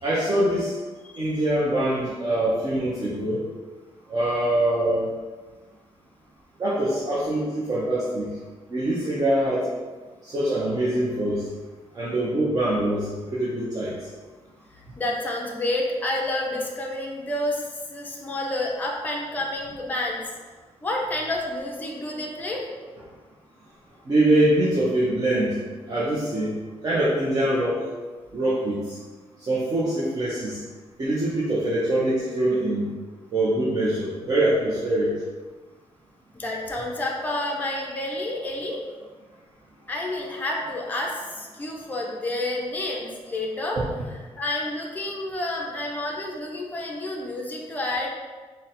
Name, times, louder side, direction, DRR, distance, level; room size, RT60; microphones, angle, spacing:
voice 1, 0.0-0.7 1.2-3.4 4.1-5.1 6.6-8.3 8.7-9.7 10.2-11.4 11.9-13.9 24.1-25.6 25.9-26.5 26.8-27.8 28.3-29.0 29.5-30.6 31.0-32.9 33.3-35.1, right 1 dB, 35° right, -8 dB, 0.6 m, -23 dB
voice 2, 15.0-20.2 20.8-22.6 36.3-38.8 39.9-43.8 44.1-48.1, left 1 dB, 15° left, -1 dB, 0.5 m, -29 dB
3.8 x 2.1 x 4.1 m, 1.4 s
wide cardioid pair, 180°, 11 cm